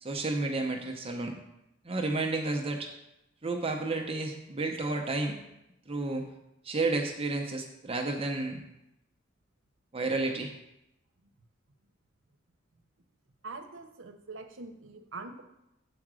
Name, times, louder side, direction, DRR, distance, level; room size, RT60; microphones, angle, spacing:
voice 1, 0.0-1.4 1.8-2.9 3.4-5.4 5.9-6.2 6.6-8.6 9.9-10.5, right 2 dB, 30° right, 2 dB, 0.7 m, -31 dB
voice 2, 13.4-15.4, right 3 dB, 85° right, 6 dB, 0.9 m, -43 dB
7.7 x 4.8 x 6.2 m, 0.87 s
head